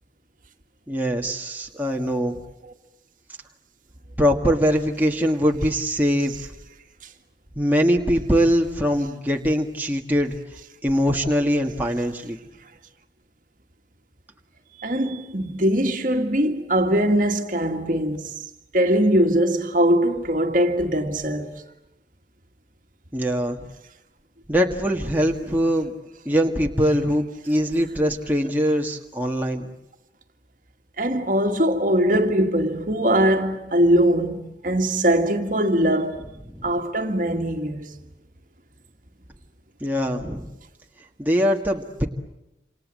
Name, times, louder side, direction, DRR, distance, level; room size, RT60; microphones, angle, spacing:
voice 1, 0.9-2.4 4.2-6.5 7.6-10.4 10.8-12.4 23.1-23.6 24.5-25.9 26.2-29.7 36.5-36.7 39.8-40.5 41.2-42.1, equal, 10° right, 1.8 m, -22 dB
voice 2, 14.8-18.3 18.7-21.6 31.0-36.2 36.6-38.0, right 1 dB, 45° right, 2.0 m, -21 dB
28.0 x 28.0 x 7.7 m
head